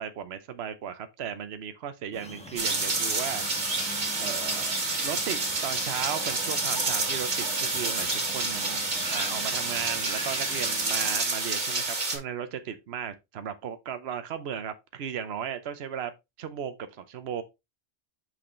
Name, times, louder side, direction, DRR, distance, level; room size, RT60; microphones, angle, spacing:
voice 1, 0.0-3.5 4.2-4.8 5.0-8.8 9.1-16.1 16.4-17.4, right 8 dB, 65° right, 1.0 m, -36 dB
sound 1, 2.1-11.2, left 1 dB, 5° left, 1.2 m, -43 dB
sound 2, 2.6-12.2, right 3 dB, 85° right, 2.2 m, -29 dB
6.4 x 6.1 x 3.0 m
omnidirectional pair, 1.2 m